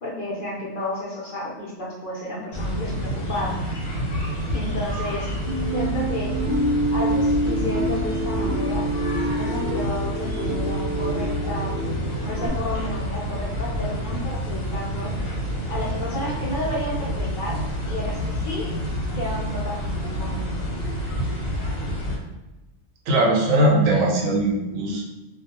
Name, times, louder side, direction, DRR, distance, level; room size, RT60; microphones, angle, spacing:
voice 1, 0.0-3.6 4.5-5.3 5.7-6.3 6.9-8.8 9.2-11.7 12.2-15.1 15.7-17.6 17.9-18.7 19.1-20.4, left 1 dB, 50° left, -5 dB, 0.7 m, -31 dB
sound 1, 2.5-22.2, equal, 80° left, 1.1 m, -28 dB
sound 2, 5.5-12.5, right 1 dB, 55° right, 0.8 m, -27 dB
voice 2, 23.1-25.1, right 1 dB, 90° right, -2 dB, 1.1 m, -20 dB
2.4 x 2.2 x 2.8 m, 1.1 s
omnidirectional pair, 1.4 m